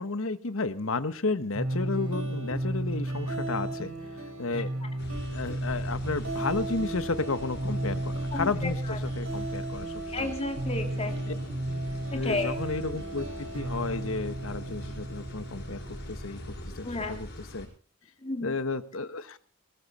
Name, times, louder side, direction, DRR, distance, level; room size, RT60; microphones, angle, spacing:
voice 1, 0.0-3.9 4.4-4.7 5.3-10.3 12.1-16.4 16.8-17.7 18.4-19.4, left 3 dB, 65° left, 13 dB, 1.1 m, -32 dB
sound 1, 1.5-16.6, right 1 dB, 75° right, 5.3 m, -34 dB
sound 2, 5.0-17.7, equal, 50° left, 6.3 m, -42 dB
voice 2, 8.3-9.0 10.1-11.4 12.2-12.5 16.8-17.1 18.2-18.5, left 2 dB, 25° left, 5 dB, 2.5 m, -32 dB
20.0 x 14.5 x 4.2 m, 0.41 s
head